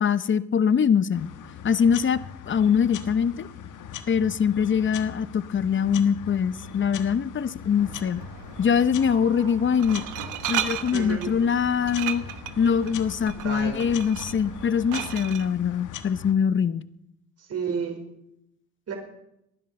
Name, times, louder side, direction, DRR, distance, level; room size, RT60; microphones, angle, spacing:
voice 1, 0.0-1.3 1.6-2.2 2.5-3.5 4.1-8.2 8.6-10.0 10.5-12.2 12.6-16.8, left 7 dB, 40° left, 16 dB, 0.8 m, -23 dB
sound 1, 1.1-16.3, left 9 dB, 80° left, 1.5 m, -41 dB
Glass, 7.6-15.4, right 12 dB, 90° right, 1.1 m, -36 dB
voice 2, 10.9-11.3 13.3-13.9 17.4-18.0 18.9-19.0, right 6 dB, 55° right, 4 dB, 5.0 m, -31 dB
19.0 x 11.0 x 6.7 m, 0.81 s
cardioid pair, 90°, 30 cm